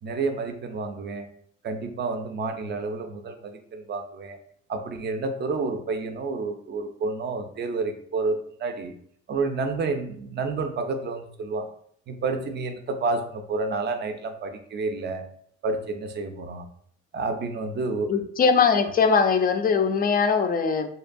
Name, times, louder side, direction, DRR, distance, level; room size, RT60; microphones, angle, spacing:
voice 1, 0.0-1.3 1.6-4.4 4.7-8.9 9.3-11.7 12.1-15.3 15.6-16.6 17.1-18.1, right 3 dB, 35° right, 6 dB, 0.4 m, -29 dB
voice 2, 18.1-20.9, left 5 dB, 30° left, 6 dB, 0.4 m, -21 dB
2.7 x 2.2 x 2.5 m, 0.65 s
cardioid pair, 90°, 30 cm